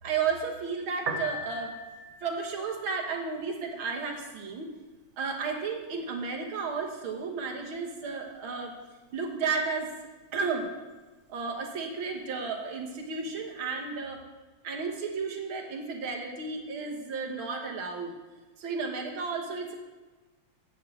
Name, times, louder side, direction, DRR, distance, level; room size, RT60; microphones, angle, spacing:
voice 1, 0.0-1.7 2.2-4.7 5.2-8.7 9.1-9.9 10.3-10.7 11.3-14.2 14.6-18.1 18.6-19.7, right 5 dB, 85° right, 2 dB, 2.1 m, -33 dB
Piano, 0.9-13.9, right 1 dB, 50° right, 0.9 m, -45 dB
9.3 x 5.7 x 7.7 m, 1.2 s
omnidirectional pair, 2.2 m